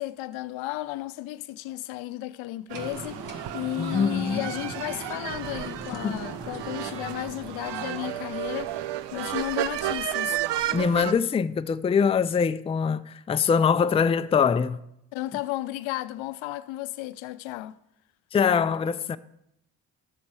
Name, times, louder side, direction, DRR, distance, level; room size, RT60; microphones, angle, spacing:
voice 1, 0.0-8.8 9.1-10.4 15.1-17.8, left 16 dB, 80° left, 0.6 m, -34 dB
sound 1, 2.7-9.0, right 3 dB, 40° right, 1.7 m, -41 dB
sound 2, 2.7-11.1, right 13 dB, 65° right, 0.6 m, -32 dB
voice 2, 3.8-4.5 6.0-6.3 10.7-14.8 18.3-19.2, left 6 dB, 15° left, 0.3 m, -23 dB
11.5 x 7.4 x 4.6 m
supercardioid pair, 50°, 46 cm